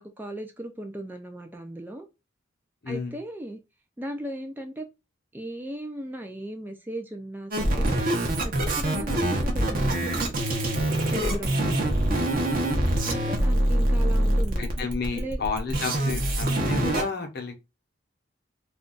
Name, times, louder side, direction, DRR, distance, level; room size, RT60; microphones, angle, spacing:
voice 1, 0.0-2.1 2.9-3.6 4.0-4.9 5.3-7.9 8.4-10.3 11.1-11.9 13.0-14.9 15.1-15.4 16.0-16.2, right 1 dB, 10° right, 0.3 m, -37 dB
voice 2, 2.8-3.1 11.5-12.2 14.6-17.5, left 4 dB, 55° left, 0.7 m, -32 dB
sound 1, 7.5-17.0, right 1 dB, 45° right, 0.7 m, -24 dB
2.4 x 2.2 x 3.8 m
head